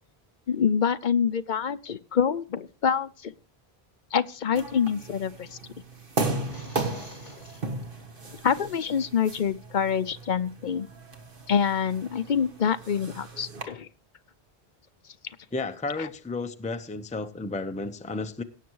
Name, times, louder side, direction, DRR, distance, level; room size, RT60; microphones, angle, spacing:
voice 1, 0.5-3.3 4.1-5.5 8.4-10.9 11.5-13.9 16.0-16.1, left 7 dB, 55° left, 13 dB, 0.8 m, -26 dB
sound 1, 4.6-13.6, right 2 dB, 60° right, 1.7 m, -36 dB
sound 2, 6.1-7.9, left 1 dB, 30° left, 4.5 m, -49 dB
voice 2, 15.5-18.4, left 3 dB, 10° left, 9 dB, 0.6 m, -32 dB
17.0 x 7.1 x 4.6 m, 0.35 s
omnidirectional pair, 1.1 m